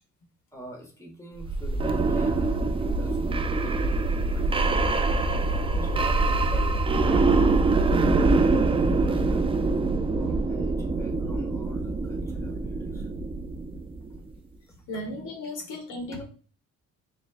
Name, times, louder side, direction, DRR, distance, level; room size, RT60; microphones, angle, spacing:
voice 1, 0.5-5.2 5.7-9.7 10.1-13.1 14.7-14.8 16.1-16.2, left 1 dB, 10° left, 0 dB, 1.4 m, -44 dB
sound 1, 1.4-14.2, right 3 dB, 20° right, 0.4 m, -24 dB
voice 2, 14.9-16.2, left 1 dB, 85° left, 3 dB, 1.3 m, -35 dB
4.1 x 3.5 x 2.5 m, 0.40 s
cardioid pair, 90°, 30 cm